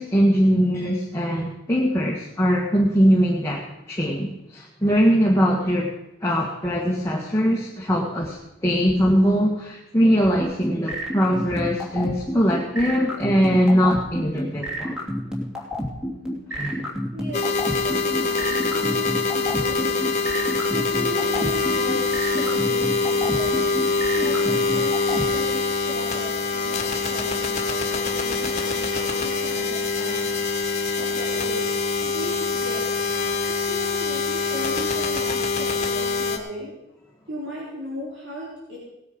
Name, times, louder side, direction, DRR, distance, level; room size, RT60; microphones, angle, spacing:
voice 1, 0.0-5.9 6.2-15.0 16.5-16.8 18.7-18.8, equal, 15° left, -3 dB, 1.6 m, -21 dB
sound 1, 10.4-25.2, equal, 5° right, 2.5 m, -29 dB
voice 2, 17.1-20.1 20.6-27.6 27.9-30.3 31.0-31.7 32.0-32.9 33.5-36.7 37.3-38.8, equal, 65° right, -5 dB, 3.6 m, -36 dB
sound 2, 17.3-36.4, left 3 dB, 35° left, 1.7 m, -24 dB
18.0 x 9.4 x 5.3 m, 0.93 s
head